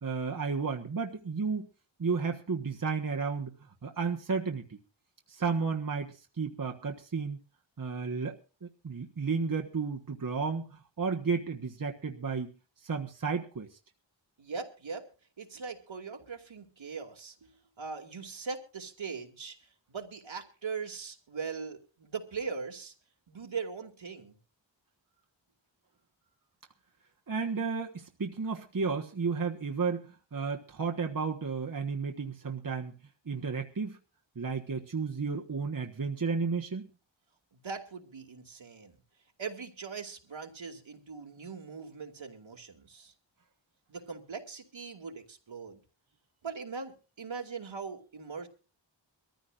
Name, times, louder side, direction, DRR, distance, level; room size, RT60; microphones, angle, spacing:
voice 1, 0.0-1.7 2.0-3.5 3.8-4.8 5.3-7.4 7.8-12.5 12.8-13.8 27.3-33.0 33.3-34.0 34.3-36.9, right 5 dB, 45° right, 2 dB, 1.4 m, -33 dB
voice 2, 14.4-15.1 15.4-17.5 17.8-22.9 23.3-24.4 37.5-39.0 39.4-43.1 43.9-45.8 46.4-48.5, right 5 dB, 75° right, 3 dB, 2.6 m, -40 dB
23.0 x 14.5 x 2.5 m, 0.34 s
wide cardioid pair, 85°, 47 cm